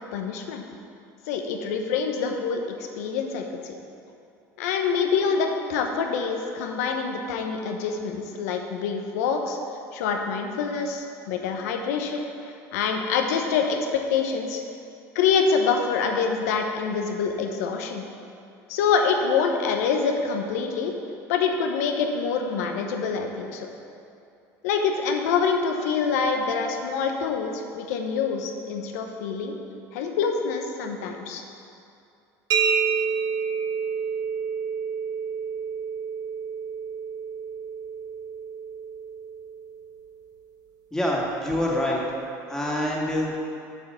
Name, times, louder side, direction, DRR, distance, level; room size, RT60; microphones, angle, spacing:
voice 1, 0.1-0.6 1.3-2.6 2.9-3.7 4.6-9.6 9.9-13.8 14.1-14.6 15.1-18.0 18.7-20.9 21.3-23.7 24.6-29.5 29.9-31.4, left 5 dB, 85° left, 4 dB, 1.0 m, -26 dB
sound 1, 32.5-40.1, right 6 dB, 55° right, 0.8 m, -29 dB
voice 2, 40.9-42.0 42.5-43.4, left 1 dB, 5° left, -4 dB, 2.0 m, -25 dB
7.4 x 5.9 x 6.7 m, 2.5 s
supercardioid pair, 105°, 8 cm